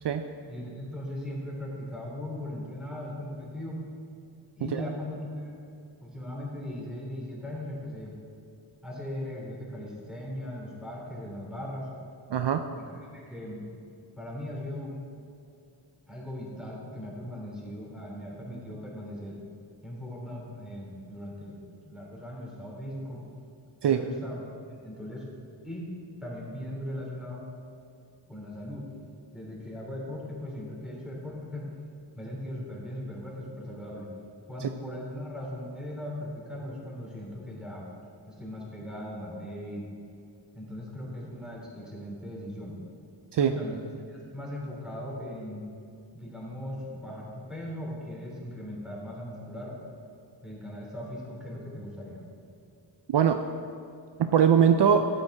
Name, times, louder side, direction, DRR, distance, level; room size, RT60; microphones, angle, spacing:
voice 1, 0.5-3.8 4.6-5.6 6.0-8.1 8.8-11.9 12.8-12.9 13.1-13.8 14.1-15.0 16.1-19.4 19.8-23.2 23.8-24.5 24.8-25.3 25.6-25.9 26.2-27.5 28.3-28.9 29.3-31.7 32.2-34.1 34.5-37.9 38.3-39.9 40.5-42.8 43.4-43.8 44.1-45.6 46.1-49.8 50.4-52.2, left 1 dB, ahead, -4 dB, 3.0 m, -38 dB
voice 2, 12.3-12.6 23.8-24.0 43.3-43.5 53.1-53.4 54.2-55.1, right 8 dB, 60° right, 8 dB, 0.6 m, -21 dB
13.0 x 9.1 x 4.7 m, 2.5 s
wide cardioid pair, 145°, 47 cm